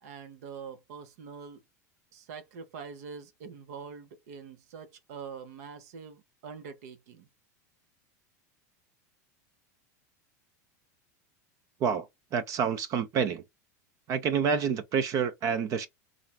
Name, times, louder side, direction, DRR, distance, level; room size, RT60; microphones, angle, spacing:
voice 1, 0.0-1.6 2.1-7.3, right 6 dB, 70° right, 0.8 m, -44 dB
voice 2, 11.8-13.4 14.1-15.9, right 6 dB, 40° right, 0.5 m, -28 dB
3.1 x 2.5 x 2.2 m
supercardioid pair, 130°, 9 cm